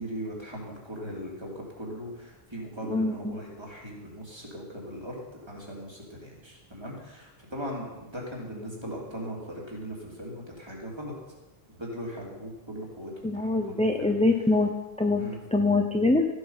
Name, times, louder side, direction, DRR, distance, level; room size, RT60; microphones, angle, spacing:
voice 1, 0.0-11.1 11.8-14.1 15.2-15.4, equal, 25° right, -3 dB, 2.9 m, -39 dB
voice 2, 2.9-3.4 13.2-14.7 15.0-15.2 15.5-16.3, left 2 dB, 10° left, 3 dB, 0.6 m, -24 dB
14.5 x 8.0 x 5.7 m, 1.2 s
omnidirectional pair, 1.0 m